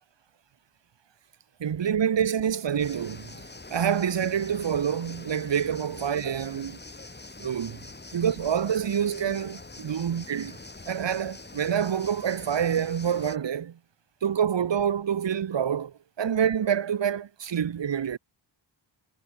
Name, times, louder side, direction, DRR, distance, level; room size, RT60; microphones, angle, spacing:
voice 1, 1.6-3.3 3.7-6.8 7.4-7.8 8.1-10.6 10.9-13.8 14.2-18.2, right 8 dB, 65° right, 2.4 m, -27 dB
sound 1, 2.8-13.4, left 2 dB, 20° left, 7.8 m, -44 dB
wide cardioid pair, 120°, 47 cm